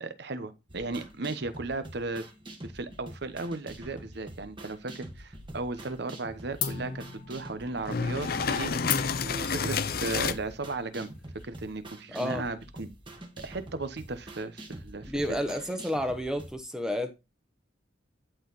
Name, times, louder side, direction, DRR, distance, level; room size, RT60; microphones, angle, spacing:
voice 1, 0.0-2.3 2.6-11.1 11.4-12.9 13.4-15.4, right 3 dB, 60° right, 0.9 m, -36 dB
sound 1, 0.7-16.5, right 1 dB, 25° right, 1.6 m, -46 dB
sound 2, 4.7-5.5 5.8-6.2 6.6-11.7, left 7 dB, 85° left, 1.5 m, -38 dB
sound 3, 7.9-10.3, left 5 dB, 50° left, 0.6 m, -29 dB
voice 2, 12.1-12.5 15.1-17.1, equal, 5° right, 0.9 m, -31 dB
11.0 x 4.4 x 4.0 m
head